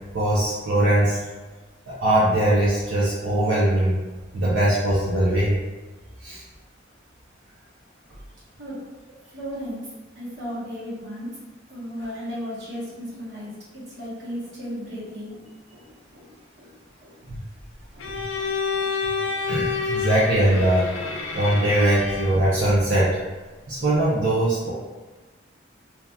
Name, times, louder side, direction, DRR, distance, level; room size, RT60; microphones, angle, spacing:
voice 1, 0.1-1.2 2.0-4.0 4.3-5.6 6.2-6.4 17.3-17.4 19.5-20.8 21.3-23.1 23.7-24.7, right 1 dB, 80° right, -9 dB, 0.6 m, -21 dB
voice 2, 9.3-9.8 10.2-11.3 11.7-13.5 14.0-15.4 15.7-15.8 16.1-16.3 16.6-16.7 17.0-17.1 17.9-18.1 18.3-18.5 18.8-18.9 19.2-19.3 19.6-19.7, equal, 60° right, -8 dB, 1.0 m, -35 dB
Bowed string instrument, 18.0-22.5, left 5 dB, 85° left, 0.3 m, -28 dB
2.8 x 2.3 x 2.3 m, 1.2 s
head